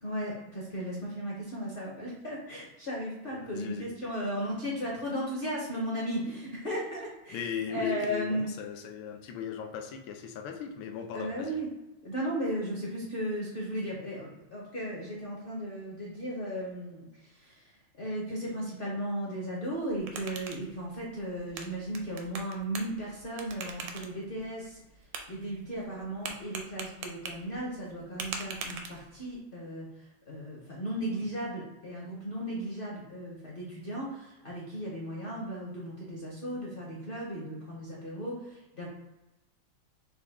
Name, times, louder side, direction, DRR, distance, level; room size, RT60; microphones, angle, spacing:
voice 1, 0.0-8.5 11.1-11.7 12.0-38.9, equal, 50° left, -5 dB, 0.6 m, -36 dB
voice 2, 3.3-3.9 7.3-11.6, left 6 dB, 80° left, 4 dB, 1.4 m, -37 dB
sound 1, 19.7-29.4, right 5 dB, 75° right, 1.2 m, -44 dB
5.9 x 2.2 x 3.4 m, 1.0 s
omnidirectional pair, 2.1 m